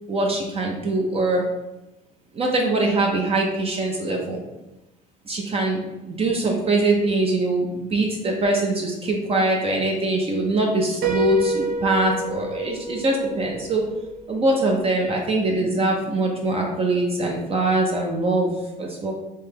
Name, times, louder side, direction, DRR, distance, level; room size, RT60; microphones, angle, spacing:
voice 1, 0.1-1.4 2.3-4.4 5.3-13.9 14.3-19.1, right 2 dB, 35° right, 0 dB, 0.6 m, -23 dB
Piano, 11.0-14.8, right 4 dB, 70° right, 0.7 m, -29 dB
3.2 x 2.8 x 3.5 m, 0.99 s
cardioid pair, 110°, 17 cm